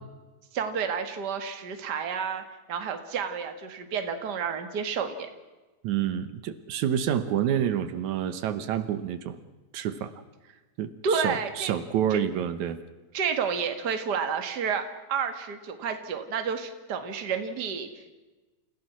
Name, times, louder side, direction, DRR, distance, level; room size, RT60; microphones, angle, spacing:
voice 1, 0.5-2.4 2.7-5.3 11.0-11.7 12.1-12.2 13.1-14.8 15.1-18.1, right 6 dB, 40° right, 7 dB, 2.1 m, -30 dB
voice 2, 5.8-9.4 9.7-10.1 10.8-12.8, right 9 dB, 80° right, 11 dB, 2.5 m, -28 dB
29.0 x 16.0 x 6.1 m, 1.2 s
omnidirectional pair, 3.3 m